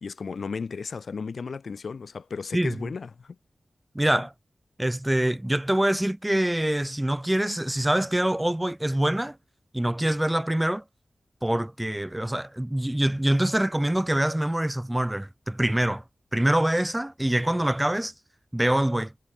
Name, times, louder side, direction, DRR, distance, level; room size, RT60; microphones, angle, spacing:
voice 1, 0.0-3.4, left 5 dB, 75° left, 1.8 m, -34 dB
voice 2, 2.5-2.9 3.9-4.3 4.8-9.4 9.7-10.8 11.4-16.0 16.3-18.1 18.5-19.1, right 1 dB, 15° right, 0.4 m, -25 dB
cardioid pair, 50°, 0 cm